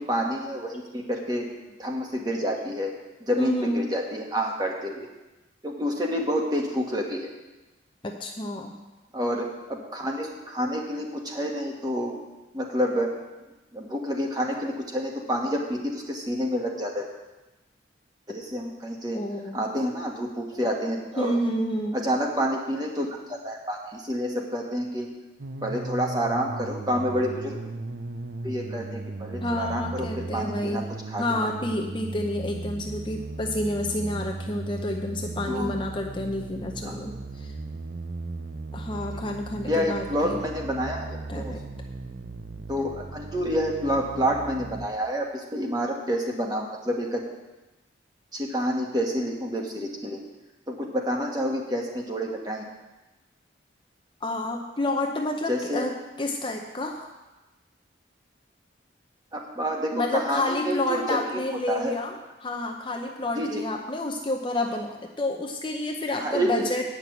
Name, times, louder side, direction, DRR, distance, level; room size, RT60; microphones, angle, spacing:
voice 1, 0.0-1.5 1.8-2.9 3.2-5.0 5.6-7.3 9.1-12.1 12.5-13.1 13.7-17.1 18.3-19.2 19.5-21.4 21.9-25.1 25.6-27.6 28.4-31.5 35.4-35.8 36.8-36.9 39.1-39.2 39.6-41.5 42.7-47.2 48.3-50.2 50.7-52.6 55.5-55.9 59.3-61.9 63.3-63.6 66.2-66.7, equal, 20° right, 0 dB, 1.4 m, -28 dB
voice 2, 3.4-3.8 8.0-8.7 19.1-19.6 21.2-22.0 29.4-30.9 31.2-37.5 38.7-40.4 41.3-41.6 54.2-55.9 56.2-57.1 59.9-62.1 62.4-66.8, left 1 dB, 25° left, 2 dB, 0.6 m, -29 dB
sound 1, 25.4-44.9, right 3 dB, 60° right, 0.6 m, -37 dB
9.2 x 6.0 x 8.2 m, 1.1 s
head